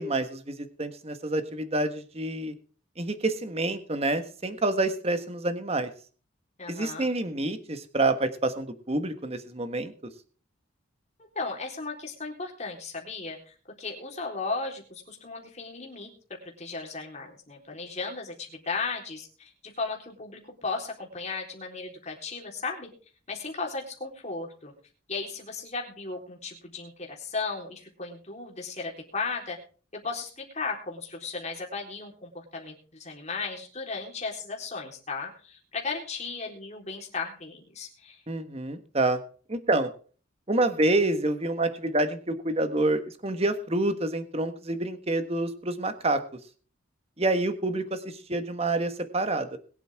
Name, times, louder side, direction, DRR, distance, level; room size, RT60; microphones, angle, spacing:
voice 1, 0.0-2.5 3.0-5.9 6.7-9.9 38.3-39.2 39.5-39.9 40.5-46.2 47.2-49.6, right 2 dB, 30° right, 9 dB, 1.4 m, -27 dB
voice 2, 6.6-7.1 11.4-16.1 16.4-22.9 23.3-24.7 25.1-29.6 29.9-38.2, left 4 dB, 35° left, 0 dB, 3.8 m, -35 dB
22.0 x 8.2 x 3.6 m, 0.40 s
head